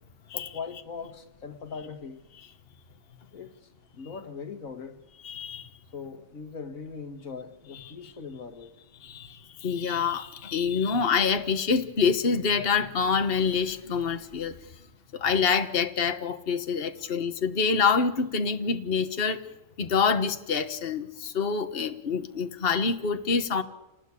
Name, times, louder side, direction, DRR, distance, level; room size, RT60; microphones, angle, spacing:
voice 1, 0.3-2.2 3.3-3.6 3.9-5.0 5.9-8.7, left 5 dB, 85° left, 2.1 m, -40 dB
voice 2, 5.2-5.7 9.0-14.5 15.1-19.4 19.8-23.6, left 5 dB, 45° left, 1.4 m, -26 dB
28.5 x 19.0 x 8.4 m
omnidirectional pair, 1.4 m